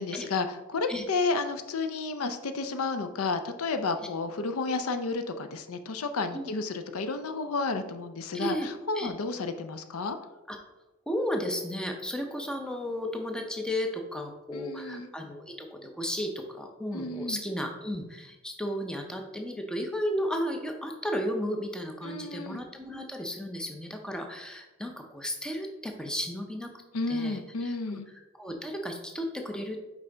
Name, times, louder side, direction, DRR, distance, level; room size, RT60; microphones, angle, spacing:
voice 1, 0.0-10.2 14.5-15.1 16.9-17.4 22.0-22.6 26.9-28.1, left 3 dB, 90° left, 9 dB, 0.5 m, -31 dB
voice 2, 8.3-8.7 8.9-9.1 10.5-10.6 11.1-26.7 27.1-28.0 28.3-29.8, equal, 5° left, 4 dB, 0.6 m, -34 dB
5.4 x 4.7 x 3.8 m, 1.1 s
head